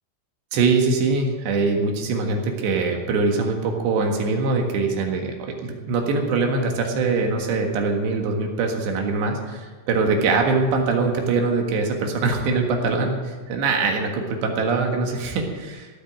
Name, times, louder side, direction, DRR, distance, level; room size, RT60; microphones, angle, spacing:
voice 1, 0.5-15.9, right 4 dB, 70° right, 2 dB, 3.7 m, -23 dB
16.0 x 9.0 x 7.4 m, 1.4 s
omnidirectional pair, 5.5 m